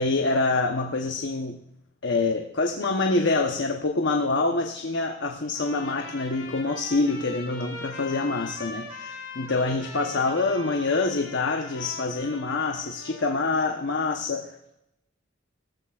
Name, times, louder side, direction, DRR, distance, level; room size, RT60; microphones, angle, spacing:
voice 1, 0.0-1.6 2.0-14.6, left 3 dB, 60° left, 4 dB, 0.9 m, -26 dB
Trumpet, 5.5-13.4, left 3 dB, 80° left, 4.9 m, -41 dB
18.5 x 14.5 x 2.4 m, 0.81 s
head